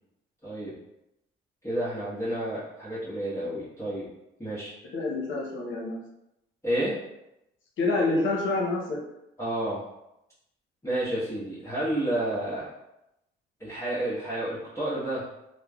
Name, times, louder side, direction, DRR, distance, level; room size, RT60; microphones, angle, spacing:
voice 1, 1.6-4.1 4.4-4.7 6.6-7.0 9.4-9.8 10.8-12.7 13.6-15.2, right 1 dB, 15° left, -11 dB, 1.1 m, -30 dB
voice 2, 4.9-6.0 7.8-9.0, left 2 dB, 75° left, -2 dB, 0.8 m, -27 dB
3.3 x 2.1 x 2.3 m, 0.87 s
cardioid pair, 90°, 20 cm